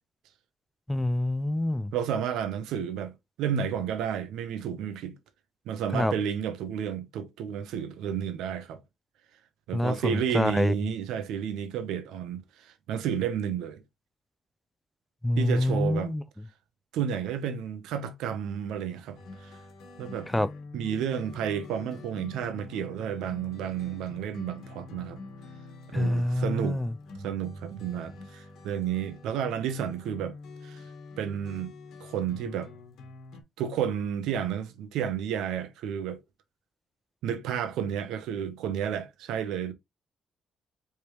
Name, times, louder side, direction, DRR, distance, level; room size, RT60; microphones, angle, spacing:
voice 1, 0.9-1.9 5.9-6.1 9.7-10.8 15.2-16.2 20.3-20.5 25.9-26.9, left 1 dB, 10° left, 0.4 m, -26 dB
voice 2, 1.9-3.1 3.4-5.1 5.7-8.8 9.7-13.8 15.4-16.1 16.9-19.6 20.0-20.3 20.7-25.2 25.9-26.8 27.2-30.3 30.6-30.8 31.2-31.7 32.0-32.7 33.6-36.2 37.2-39.7, right 8 dB, 90° right, 0.8 m, -31 dB
sound 1, 19.2-33.4, left 3 dB, 80° left, 1.2 m, -46 dB
4.9 x 3.4 x 2.9 m
cardioid pair, 90°, 0 cm